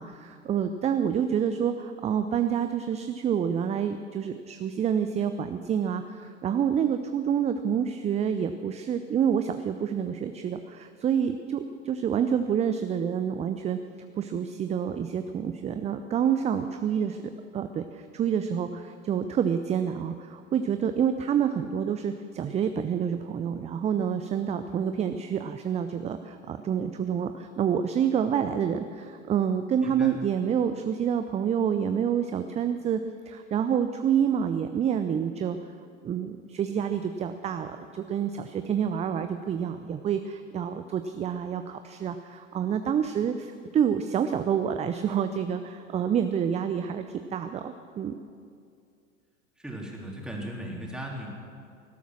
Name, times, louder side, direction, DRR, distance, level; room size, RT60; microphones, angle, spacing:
voice 1, 0.0-13.8 14.2-17.2 17.5-33.0 33.3-35.6 36.0-48.1, right 8 dB, 15° right, 9 dB, 0.5 m, -28 dB
voice 2, 49.6-51.3, right 1 dB, ahead, -2 dB, 3.4 m, -37 dB
19.0 x 12.0 x 6.2 m, 2.3 s
figure-of-eight pair, 90°, 38 cm